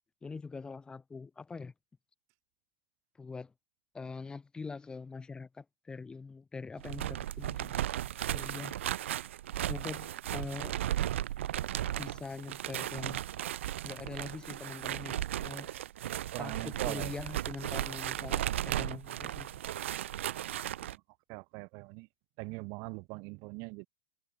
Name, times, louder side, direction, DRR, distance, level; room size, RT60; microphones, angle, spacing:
voice 1, 0.2-1.7 3.2-3.5 3.9-7.8 8.3-8.8 9.7-10.8 12.0-13.2 13.8-15.7 16.4-19.6, left 4 dB, 10° left, 4.7 m, -43 dB
sound 1, 6.8-21.0, right 12 dB, 75° right, 1.1 m, -36 dB
voice 2, 16.3-17.1 20.5-20.9 21.3-22.1 22.4-23.9, right 31 dB, 50° right, 6.1 m, -42 dB
hypercardioid pair, 130°, 7 cm